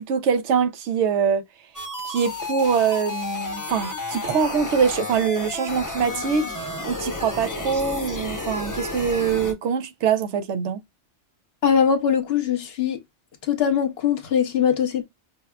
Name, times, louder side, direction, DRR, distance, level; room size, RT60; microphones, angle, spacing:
voice 1, 0.0-1.4 2.0-10.8, right 6 dB, 90° right, 0.9 m, -23 dB
sound 1, 1.7-9.5, left 2 dB, 20° left, 0.7 m, -31 dB
voice 2, 11.6-13.0 13.4-15.0, left 7 dB, 65° left, 0.9 m, -21 dB
5.2 x 2.2 x 2.2 m
omnidirectional pair, 1.2 m